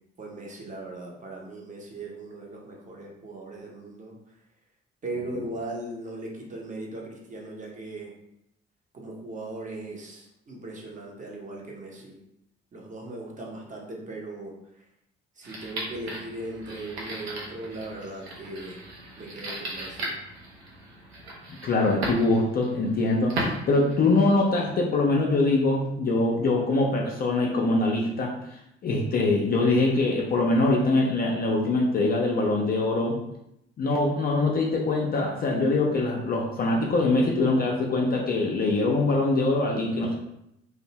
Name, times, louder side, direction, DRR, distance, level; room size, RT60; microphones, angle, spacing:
voice 1, 0.2-4.2 5.0-8.1 8.9-12.2 12.7-14.9 15.4-18.8 19.2-20.2, right 2 dB, 25° right, -2 dB, 0.6 m, -38 dB
sound 1, 15.4-24.5, right 1 dB, 80° right, 0.5 m, -37 dB
voice 2, 21.5-28.3 28.8-33.2 33.8-40.2, left 2 dB, 30° left, -1 dB, 0.4 m, -23 dB
2.5 x 2.0 x 2.8 m, 0.81 s
figure-of-eight pair, 45°, 31 cm